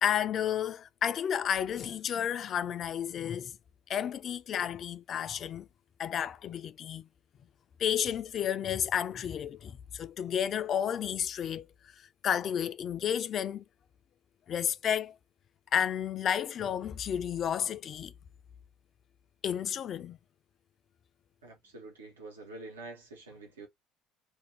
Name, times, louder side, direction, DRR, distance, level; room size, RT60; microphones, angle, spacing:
voice 1, 0.0-3.6 3.9-5.7 6.0-7.1 7.8-13.6 14.5-15.2 15.7-18.1 19.4-20.2, left 9 dB, 45° left, 0.3 m, -32 dB
voice 2, 21.4-23.7, right 3 dB, 85° right, 0.7 m, -47 dB
2.5 x 2.1 x 3.1 m
figure-of-eight pair, 60°, 0 cm